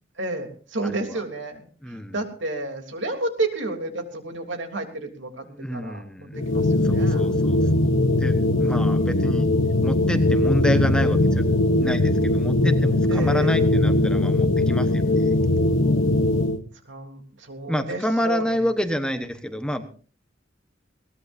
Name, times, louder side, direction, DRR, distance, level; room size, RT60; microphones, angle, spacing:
voice 1, 0.1-7.3 8.6-9.1 13.1-13.6 16.8-18.7, right 2 dB, 65° right, 4 dB, 3.2 m, -32 dB
voice 2, 0.8-1.2 1.8-2.1 5.5-6.4 6.8-9.5 9.8-11.5 11.8-15.4 17.7-19.8, equal, 5° left, 7 dB, 1.1 m, -28 dB
sound 1, 6.3-16.6, left 2 dB, 75° left, 1.1 m, -20 dB
21.5 x 19.0 x 2.7 m, 0.39 s
head